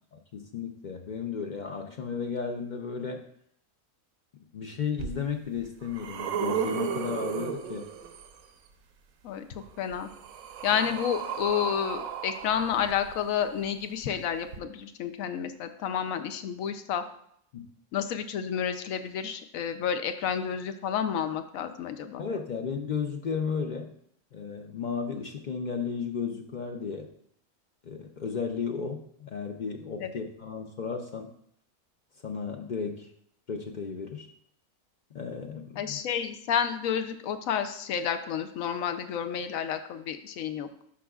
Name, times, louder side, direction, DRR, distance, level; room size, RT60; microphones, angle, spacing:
voice 1, 0.1-3.3 4.5-7.9 17.5-17.7 22.2-23.9 24.3-27.1 27.8-31.3 32.2-33.1 33.5-34.3 35.1-36.0, left 6 dB, 65° left, 4 dB, 0.4 m, -34 dB
sound 1, 5.0-5.1 5.6-8.4 9.6-13.5 14.5-14.6, right 8 dB, 85° right, 1.1 m, -34 dB
voice 2, 9.2-10.1 10.6-17.0 17.9-22.2 30.0-30.1 35.8-40.7, left 8 dB, 80° left, 9 dB, 1.0 m, -30 dB
11.5 x 4.8 x 2.3 m, 0.69 s
omnidirectional pair, 1.4 m